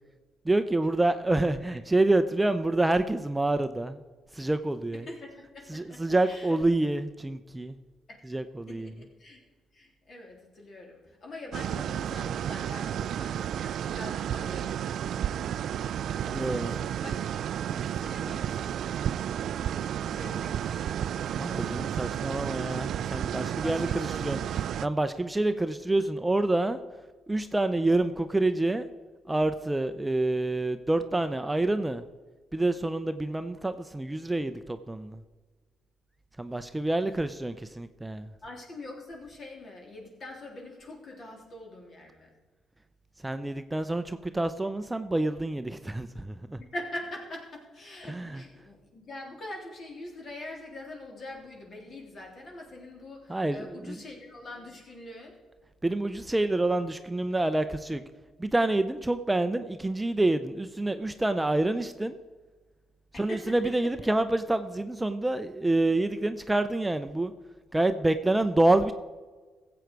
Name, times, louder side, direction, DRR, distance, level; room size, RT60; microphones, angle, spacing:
voice 1, 0.4-4.0 4.3-5.1 5.7-7.8 8.2-8.9 16.3-16.8 21.3-24.4 24.8-26.8 27.3-28.9 29.3-32.0 32.5-35.2 36.4-38.3 43.2-46.6 48.1-48.4 53.3-54.0 55.8-58.0 58.4-62.2 63.2-67.3 67.7-68.9, right 2 dB, 10° right, 10 dB, 0.5 m, -27 dB
voice 2, 4.9-6.6 8.1-8.2 8.7-9.4 9.7-15.7 16.1-17.3 17.7-18.7 19.7-21.0 23.6-24.5 38.4-42.3 46.7-55.4 63.1-63.5, left 1 dB, 50° left, 0 dB, 3.4 m, -44 dB
sound 1, 11.5-24.9, right 10 dB, 70° right, 0.3 m, -32 dB
15.5 x 7.9 x 4.7 m, 1.4 s
cardioid pair, 90°, 0 cm